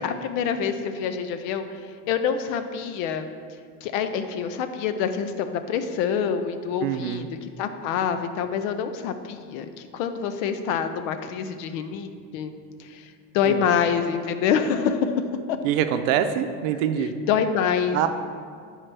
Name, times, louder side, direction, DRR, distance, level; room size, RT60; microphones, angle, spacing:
voice 1, 0.0-1.6 2.1-3.3 3.8-7.2 7.6-12.5 12.8-15.2 15.5-15.6 17.3-18.0, left 7 dB, 75° left, 9 dB, 0.7 m, -26 dB
voice 2, 6.8-7.3 13.5-13.7 15.6-17.1 17.9-18.1, right 9 dB, 75° right, 9 dB, 0.7 m, -24 dB
8.7 x 4.7 x 3.3 m, 2.1 s
supercardioid pair, 120°, 40 cm